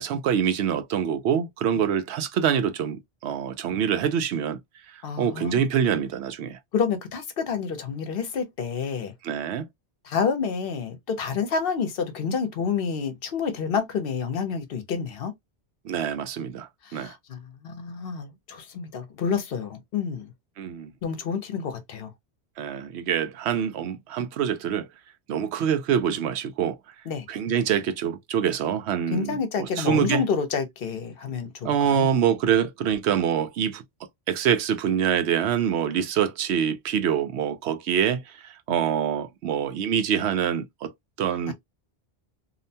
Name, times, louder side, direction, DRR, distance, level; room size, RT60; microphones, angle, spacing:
voice 1, 0.0-4.6 4.9-6.6 9.2-9.7 15.8-17.2 20.6-20.9 22.6-24.9 25.3-26.8 27.3-30.2 31.6-33.8 34.3-40.9 41.2-41.5, right 8 dB, 90° right, 0.8 m, -25 dB
voice 2, 5.0-5.6 6.7-9.1 10.0-15.3 16.8-20.3 21.0-22.1 27.1-27.3 29.1-32.1 38.7-38.8 41.5-41.6, left 6 dB, 65° left, 0.9 m, -29 dB
2.7 x 2.1 x 2.6 m
omnidirectional pair, 1.1 m